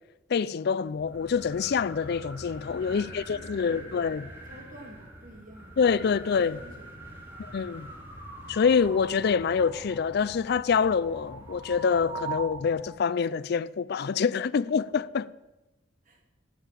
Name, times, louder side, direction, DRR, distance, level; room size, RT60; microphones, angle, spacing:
voice 1, 0.3-4.2 5.8-6.6 7.5-7.9 8.5-15.3, left 6 dB, 55° left, 0.4 m, -26 dB
sound 1, 0.9-13.0, right 2 dB, 10° right, 2.5 m, -43 dB
voice 2, 2.9-3.9 4.5-7.6 16.0-16.2, right 1 dB, 45° right, 2.2 m, -51 dB
10.0 x 9.0 x 7.5 m
head